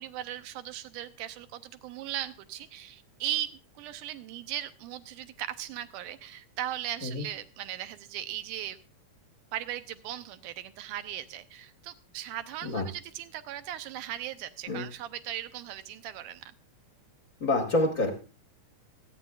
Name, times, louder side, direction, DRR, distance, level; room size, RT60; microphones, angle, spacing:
voice 1, 0.0-8.8 9.5-16.4, right 12 dB, 80° right, 11 dB, 2.2 m, -38 dB
voice 2, 17.4-18.1, left 2 dB, 50° left, 4 dB, 0.9 m, -27 dB
25.5 x 9.3 x 2.4 m, 0.33 s
omnidirectional pair, 3.8 m